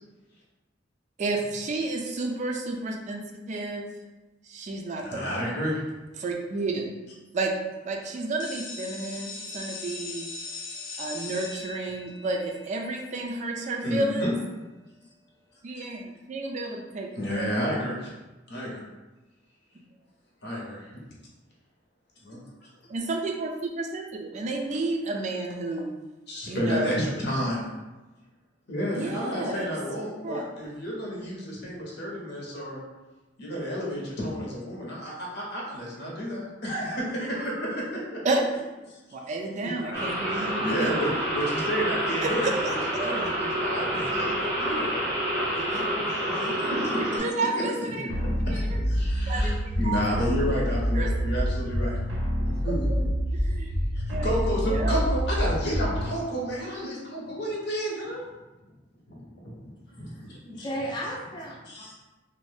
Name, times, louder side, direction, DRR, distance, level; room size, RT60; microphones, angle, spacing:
voice 1, 1.2-3.9 4.4-5.6 6.2-6.8 7.3-7.5 7.8-10.3 11.0-14.3 15.6-17.1 17.3-17.5 22.3-22.4 22.9-25.9 26.5-27.0 28.9-29.7 30.2-30.5 38.2-38.4 39.1-41.1 42.2-43.3 45.6-45.9 46.3-48.1 48.5-48.8 49.3-49.5 49.8-50.0 50.9-51.2 53.3-53.7 54.1-54.3 54.6-54.9, right 2 dB, 40° right, 1 dB, 0.3 m, -31 dB
voice 2, 5.0-5.8 10.9-11.0 13.8-14.3 15.7-15.9 17.2-18.1 18.5-18.8 20.4-21.0 22.2-22.4 26.3-27.6 28.7-32.8 33.4-37.8 38.9-39.0 39.6-42.5 43.0-45.1 45.9-46.2 46.7-46.8 47.5-47.6 48.4-52.0 52.6-53.1 53.9-58.2 59.1-60.7 61.7-61.9, equal, 60° left, -3 dB, 0.8 m, -31 dB
sound 1, 8.4-14.0, left 3 dB, 85° left, 0.5 m, -40 dB
sound 2, 39.9-47.2, equal, 15° right, 0.7 m, -28 dB
sound 3, 48.1-56.1, equal, 80° right, 0.6 m, -27 dB
voice 3, 60.4-61.9, equal, 25° left, -3 dB, 0.5 m, -34 dB
2.6 x 2.1 x 3.2 m, 1.1 s
head